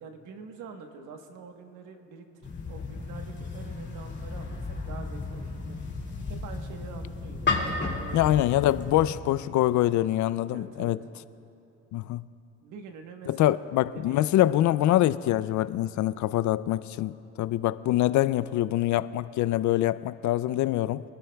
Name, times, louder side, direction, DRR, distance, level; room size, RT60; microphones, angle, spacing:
voice 1, 0.0-5.8 6.3-8.3 10.5-11.0 12.6-13.6 13.9-14.4, right 5 dB, 85° right, 5 dB, 1.3 m, -45 dB
sound 1, 2.4-9.2, left 3 dB, 35° left, 2.3 m, -33 dB
voice 2, 8.1-11.0 11.9-12.2 13.3-21.0, left 14 dB, 70° left, 16 dB, 0.4 m, -25 dB
25.0 x 12.5 x 2.3 m, 2.7 s
cardioid pair, 90°, 30 cm